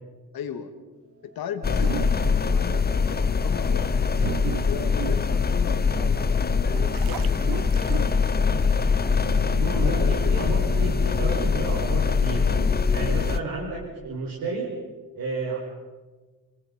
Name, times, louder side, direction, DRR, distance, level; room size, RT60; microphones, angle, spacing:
voice 1, 0.3-0.7 1.4-4.2 4.7-7.7 9.8-10.6, left 8 dB, 90° left, 7 dB, 2.4 m, -36 dB
sound 1, 1.3-14.0, right 4 dB, 45° right, 5.4 m, -42 dB
sound 2, 1.6-13.4, left 5 dB, 25° left, 0.9 m, -23 dB
sound 3, 1.8-2.5 3.2-3.3 3.9-6.0 6.5-8.6, right 12 dB, 90° right, 0.9 m, -35 dB
voice 2, 9.6-12.5 12.9-14.7 15.2-15.6, right 3 dB, 75° right, -3 dB, 5.4 m, -31 dB
29.5 x 24.0 x 5.5 m, 1.4 s
cardioid pair, 110°, 35 cm